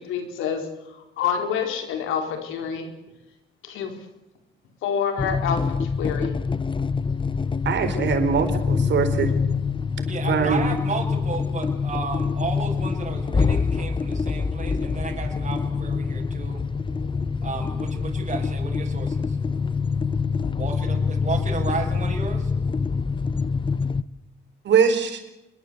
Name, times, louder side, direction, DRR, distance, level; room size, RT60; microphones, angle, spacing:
voice 1, 0.0-2.9 3.6-3.9 4.8-6.3, left 7 dB, 90° left, 6 dB, 4.5 m, -28 dB
sound 1, 5.2-24.0, left 5 dB, 25° left, 0.9 m, -25 dB
voice 2, 7.6-9.3 10.3-10.6 24.6-25.2, right 7 dB, 65° right, 8 dB, 4.7 m, -22 dB
voice 3, 10.1-16.6 17.4-19.4 20.6-22.5, right 4 dB, 35° right, 0 dB, 7.1 m, -33 dB
25.5 x 22.5 x 8.3 m, 0.93 s
cardioid pair, 90°, 20 cm